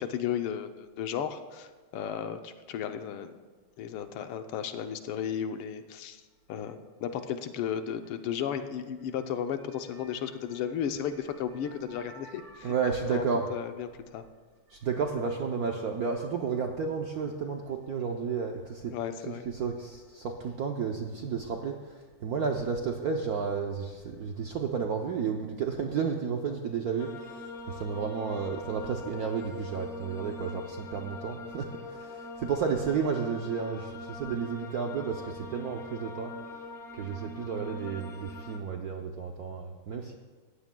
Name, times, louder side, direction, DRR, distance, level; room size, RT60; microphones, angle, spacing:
voice 1, 0.0-3.3 3.8-6.2 6.5-12.7 13.1-14.3 18.9-19.4, left 8 dB, 85° left, 8 dB, 1.7 m, -34 dB
voice 2, 9.7-13.6 14.7-36.3 36.9-40.1, right 6 dB, 70° right, 3 dB, 0.9 m, -32 dB
sound 1, 27.0-38.6, left 2 dB, 55° left, 0.8 m, -43 dB
18.0 x 14.5 x 2.2 m, 1.4 s
omnidirectional pair, 2.4 m